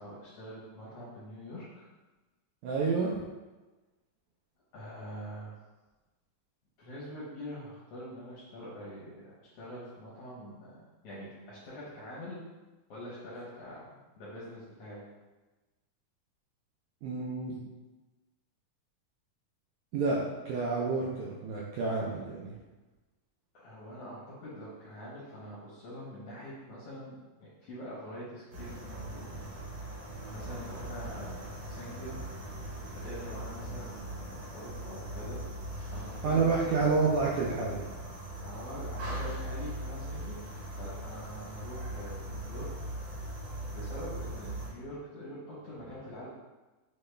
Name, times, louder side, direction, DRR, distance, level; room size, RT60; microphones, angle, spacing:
voice 1, 0.0-1.9 4.7-5.5 6.8-12.4 12.9-15.0 23.5-29.4 29.8-29.9 30.3-32.2 32.9-35.4 35.9-36.6 38.4-40.4 40.7-42.7 43.3-43.4 43.7-46.3, equal, 80° left, -7 dB, 1.3 m, -44 dB
voice 2, 2.6-3.2 17.0-17.6 19.9-22.5 36.2-37.8, right 4 dB, 85° right, -4 dB, 1.6 m, -29 dB
sound 1, 28.5-44.7, right 1 dB, 50° right, 1.6 m, -40 dB
6.4 x 2.2 x 3.2 m, 1.2 s
omnidirectional pair, 3.8 m